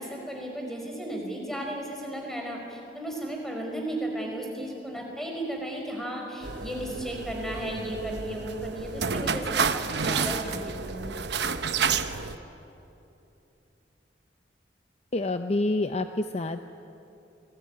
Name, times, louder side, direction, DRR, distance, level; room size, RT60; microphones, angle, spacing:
voice 1, 0.0-11.2, right 1 dB, ahead, 0 dB, 5.1 m, -34 dB
sound 1, 6.4-12.4, right 5 dB, 65° right, 1.0 m, -30 dB
voice 2, 15.1-16.7, left 2 dB, 35° left, 8 dB, 0.6 m, -27 dB
28.0 x 20.5 x 9.8 m, 3.0 s
head